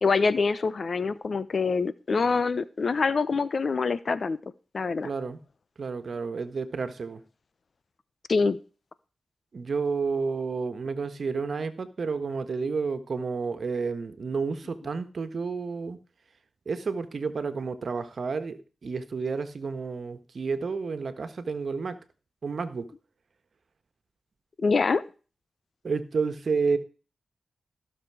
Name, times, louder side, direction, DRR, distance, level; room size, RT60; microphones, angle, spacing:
voice 1, 0.0-4.4 4.7-5.1 8.3-8.6 24.6-25.0, left 4 dB, 60° left, 16 dB, 0.9 m, -25 dB
voice 2, 5.0-5.4 5.8-7.2 9.5-16.0 16.6-22.0 22.4-22.9 25.8-26.8, right 4 dB, 65° right, 10 dB, 1.5 m, -30 dB
15.5 x 6.8 x 4.9 m, 0.35 s
cardioid pair, 45°, 0 cm